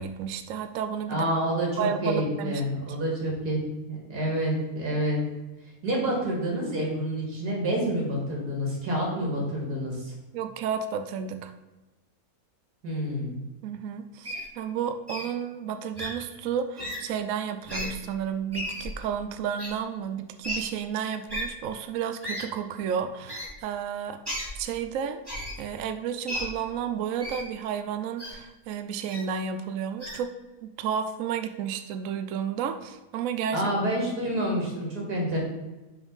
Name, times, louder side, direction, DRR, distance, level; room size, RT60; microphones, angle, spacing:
voice 1, 0.0-1.3 1.8-2.6 10.3-11.5 13.6-25.2 25.6-30.3 30.6-33.7, right 8 dB, 70° right, 8 dB, 0.9 m, -32 dB
voice 2, 1.1-3.6 3.9-5.2 5.8-10.1 12.8-13.4 33.5-35.4, right 1 dB, 85° right, -2 dB, 2.9 m, -28 dB
Wild animals, 14.2-14.4 15.1-15.3 15.9-16.1 16.8-17.0 17.6-17.9 18.5-18.9 19.6-19.7 20.4-20.6 21.3-21.4 22.2-22.4 23.3-23.5 24.2-24.5 25.2-25.5 26.3-26.4 27.2-27.4 28.2-28.3 29.1-29.2 30.0-30.2, equal, 15° right, 2.6 m, -33 dB
6.0 x 5.4 x 5.4 m, 1.1 s
omnidirectional pair, 1.6 m